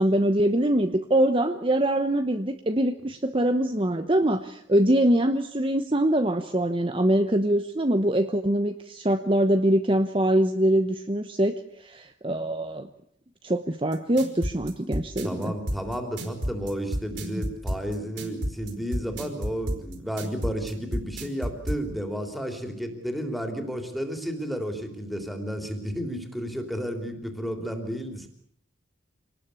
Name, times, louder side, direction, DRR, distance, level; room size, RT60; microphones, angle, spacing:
voice 1, 0.0-12.9 13.4-15.5 17.3-17.4, right 1 dB, 25° right, 7 dB, 1.0 m, -23 dB
sound 1, 13.9-21.8, equal, 60° right, 4.5 m, -30 dB
voice 2, 15.2-28.3, equal, ahead, 4 dB, 3.5 m, -32 dB
26.5 x 19.5 x 8.4 m, 0.71 s
head